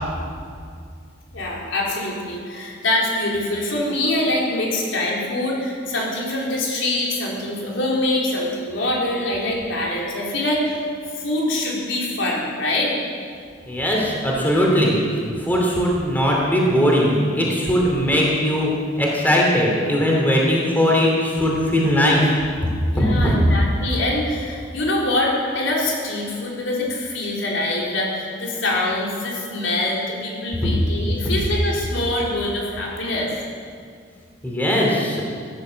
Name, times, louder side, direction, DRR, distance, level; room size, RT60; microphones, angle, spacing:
voice 1, 1.3-10.8 11.1-12.9 22.9-33.3, left 1 dB, 80° left, -3 dB, 4.1 m, -24 dB
voice 2, 13.7-15.0 15.4-22.2 23.0-23.4 34.4-35.2, equal, 10° left, -3 dB, 2.9 m, -19 dB
16.5 x 11.0 x 7.7 m, 2.2 s
head